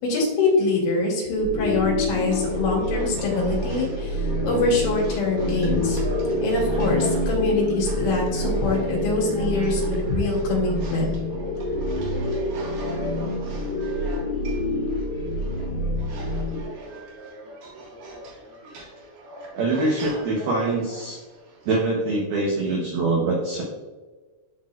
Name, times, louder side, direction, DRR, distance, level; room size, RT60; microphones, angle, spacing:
voice 1, 0.0-6.0 6.4-11.1, left 3 dB, 70° left, -4 dB, 4.5 m, -24 dB
sound 1, 1.4-16.6, equal, 85° left, 3.6 m, -27 dB
sound 2, 2.1-21.8, right 1 dB, 55° right, 2.7 m, -39 dB
voice 2, 19.5-21.2 21.7-23.6, right 2 dB, 80° right, -2 dB, 2.2 m, -24 dB
12.0 x 4.1 x 2.4 m, 1.3 s
omnidirectional pair, 5.8 m